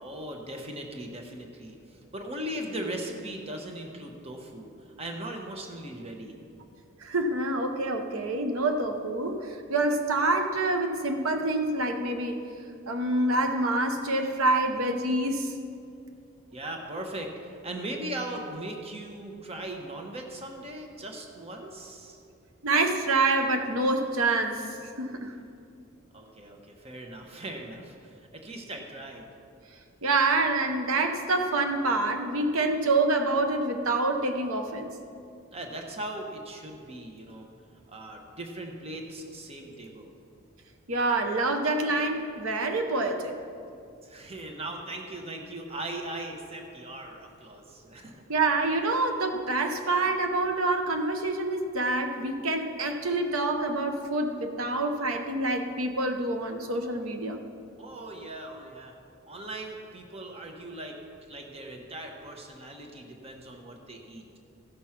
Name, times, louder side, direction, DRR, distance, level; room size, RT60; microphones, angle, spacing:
voice 1, 0.0-6.4 16.5-22.2 26.1-29.3 35.5-37.5 37.9-40.1 44.0-48.2 57.8-59.0 59.3-64.2, right 1 dB, 30° right, 2 dB, 1.1 m, -39 dB
voice 2, 7.0-12.4 12.9-15.5 22.6-25.3 30.0-34.9 40.9-43.4 48.3-57.4, right 2 dB, 80° right, 5 dB, 0.9 m, -27 dB
15.0 x 6.2 x 5.9 m, 2.5 s
head